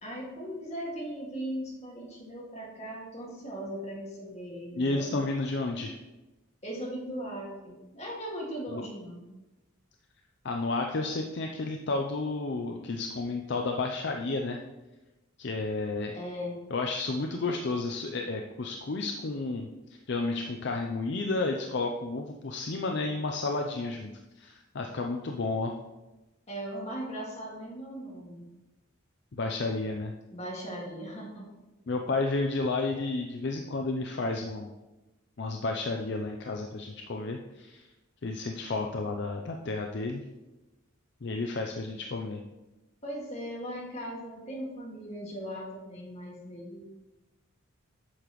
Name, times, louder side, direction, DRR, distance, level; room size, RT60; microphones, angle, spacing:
voice 1, 0.0-5.1 6.6-9.2 16.1-16.5 26.5-28.5 30.3-31.5 43.0-46.8, equal, 30° left, -3 dB, 2.0 m, -38 dB
voice 2, 4.8-6.0 10.4-14.6 15.4-16.2 16.7-24.1 24.4-25.7 29.4-30.1 31.9-34.7 35.4-37.9 38.2-40.2 41.2-42.4, left 3 dB, 55° left, 3 dB, 0.5 m, -31 dB
8.5 x 6.8 x 3.1 m, 1.1 s
head